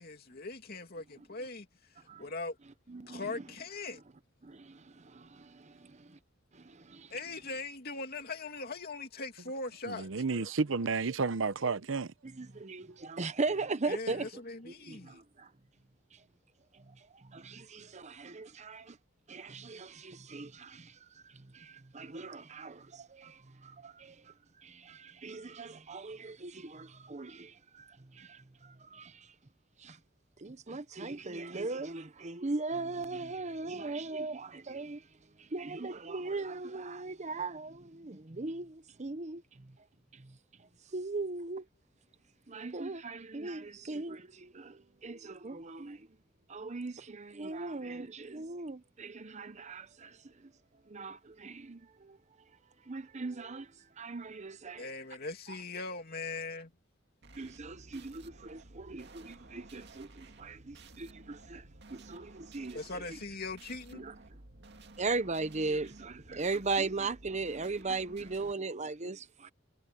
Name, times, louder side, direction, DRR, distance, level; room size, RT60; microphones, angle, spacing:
voice 1, 0.0-1.7 2.2-2.6 3.1-4.0 7.1-10.5 13.8-15.2 54.8-56.7 62.7-64.1, left 3 dB, 55° left, 2.7 m, -40 dB
voice 2, 2.9-3.4 4.4-6.2 6.5-7.1 12.2-14.3 14.7-15.5 16.1-16.2 16.7-19.0 19.3-21.0 21.2-24.3 24.6-29.3 29.8-30.0 30.4-35.0 35.4-39.7 40.1-40.4 40.9-41.7 42.5-46.1 46.5-50.5 50.9-52.2 52.9-53.7 54.0-54.9 55.5-55.6 57.4-63.0 63.9-64.1 65.0-69.5, right 3 dB, 35° right, 0.9 m, -39 dB
voice 3, 9.8-12.1, right 4 dB, 80° right, 0.8 m, -31 dB
sound 1, 57.2-68.5, right 2 dB, 60° right, 2.1 m, -54 dB
head